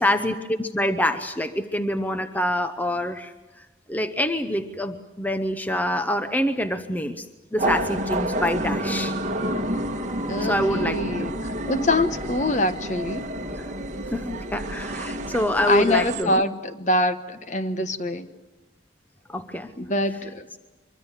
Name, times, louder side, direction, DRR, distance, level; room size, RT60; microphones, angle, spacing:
voice 1, 0.0-3.3 3.9-7.2 7.5-9.1 10.4-11.0 11.3-11.4 14.1-16.4 19.3-19.7, left 1 dB, 10° left, 9 dB, 0.8 m, -25 dB
sound 1, 7.6-16.2, right 1 dB, 40° right, 1.6 m, -29 dB
voice 2, 10.3-13.3 15.6-18.3 19.8-20.6, left 1 dB, 40° left, 10 dB, 1.2 m, -25 dB
24.5 x 23.5 x 7.4 m, 1.2 s
head